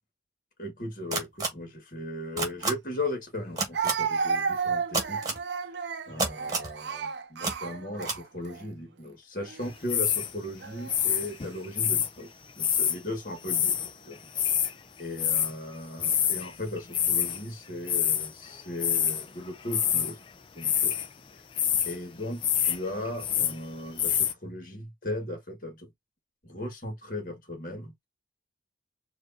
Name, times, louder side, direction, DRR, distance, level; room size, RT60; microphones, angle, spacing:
voice 1, 0.6-5.2 6.1-13.8 14.1-14.5 15.0-20.2 20.6-20.9 21.9-25.9 26.4-28.0, left 1 dB, 45° left, 1.5 m, -37 dB
sound 1, 1.1-1.5 2.4-2.7 3.6-3.9 4.9-5.4 6.2-6.7 7.4-7.5 8.0-8.2, right 3 dB, 20° right, 1.4 m, -28 dB
Speech, 2.6-2.7 3.7-8.6 9.4-9.7 10.6-11.2, right 5 dB, 70° right, 0.6 m, -32 dB
sound 2, 9.9-10.3 10.9-12.1 12.6-13.0 13.4-13.9 14.2-14.7 15.2-15.5 16.0-16.5 16.8-17.4 17.9-18.3 18.8-19.2 19.7-20.1 20.6-21.1 21.6-22.0 22.4-22.8 23.1-23.6 24.0-24.3, left 9 dB, 30° left, 0.4 m, -26 dB
4.8 x 2.5 x 2.6 m
head